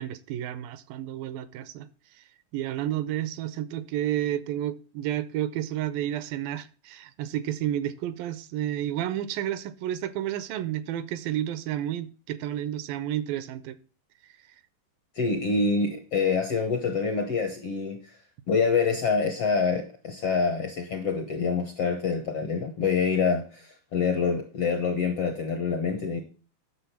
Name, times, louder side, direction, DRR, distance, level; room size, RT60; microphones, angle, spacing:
voice 1, 0.0-1.9 2.5-13.8, right 12 dB, 80° right, 16 dB, 2.3 m, -31 dB
voice 2, 15.2-18.2 18.5-26.2, left 5 dB, 65° left, 6 dB, 1.5 m, -26 dB
9.9 x 6.6 x 7.0 m, 0.37 s
omnidirectional pair, 4.2 m